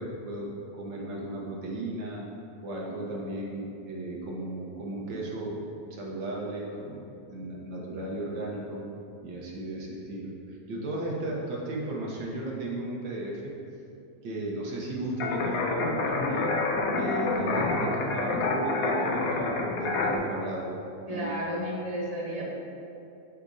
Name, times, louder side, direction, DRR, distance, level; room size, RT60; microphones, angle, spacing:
voice 1, 0.0-2.3 2.6-8.9 9.2-13.6 14.2-16.5 16.9-20.7 21.1-21.3, right 1 dB, 80° right, -3 dB, 1.8 m, -35 dB
sound 1, 15.2-20.2, left 3 dB, 65° left, 1.0 m, -27 dB
voice 2, 21.1-22.5, equal, 30° left, -7 dB, 0.7 m, -32 dB
11.5 x 4.8 x 2.7 m, 2.7 s
omnidirectional pair, 2.0 m